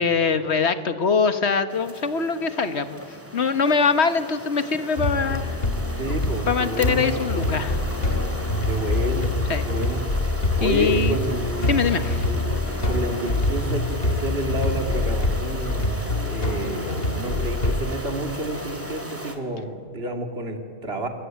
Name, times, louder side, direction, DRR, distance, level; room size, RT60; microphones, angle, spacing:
voice 1, 0.0-3.0 3.3-5.6 6.5-7.8 9.5-9.6 10.6-11.2 11.7-12.2, left 5 dB, 90° left, 10 dB, 1.6 m, -23 dB
sound 1, 1.7-19.3, equal, 10° right, 2.6 m, -37 dB
sound 2, 5.0-17.8, left 2 dB, 60° left, 2.3 m, -26 dB
voice 2, 5.9-7.0 8.6-9.4 9.6-10.0 10.6-11.8 12.3-12.4 12.8-21.1, right 1 dB, 70° right, 4 dB, 3.1 m, -30 dB
sound 3, 7.5-15.4, left 1 dB, 10° left, 0.7 m, -33 dB
27.0 x 22.0 x 9.4 m, 2.3 s
omnidirectional pair, 1.1 m